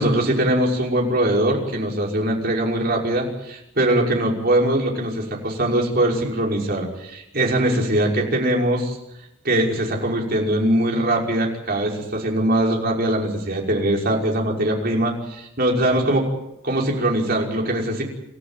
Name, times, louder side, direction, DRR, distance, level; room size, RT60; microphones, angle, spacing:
voice 1, 0.0-9.0 9.4-16.2 16.6-18.0, right 1 dB, 45° right, -1 dB, 5.7 m, -21 dB
28.0 x 14.5 x 9.2 m, 0.86 s
head